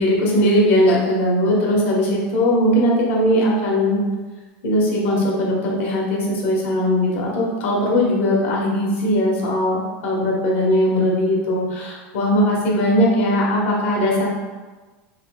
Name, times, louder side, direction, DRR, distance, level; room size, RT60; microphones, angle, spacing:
voice 1, 0.0-4.0 4.6-14.2, equal, 80° left, -3 dB, 1.0 m, -19 dB
4.0 x 2.9 x 2.2 m, 1.3 s
supercardioid pair, 150°, 7 cm